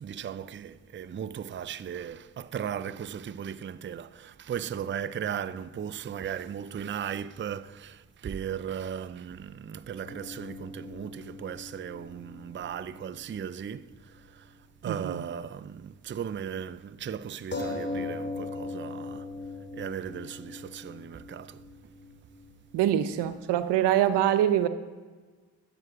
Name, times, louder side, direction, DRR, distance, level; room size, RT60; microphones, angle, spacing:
voice 1, 0.0-13.8 14.4-14.5 14.8-19.3 19.7-21.6, right 8 dB, 30° right, 0.5 m, -37 dB
sound 1, 10.0-13.9 14.2-14.3 17.5-22.7, left 3 dB, 25° left, 2.9 m, -40 dB
voice 2, 14.9-15.2 22.7-24.7, right 11 dB, 80° right, 0.8 m, -24 dB
12.5 x 7.8 x 4.9 m
supercardioid pair, 60°, 41 cm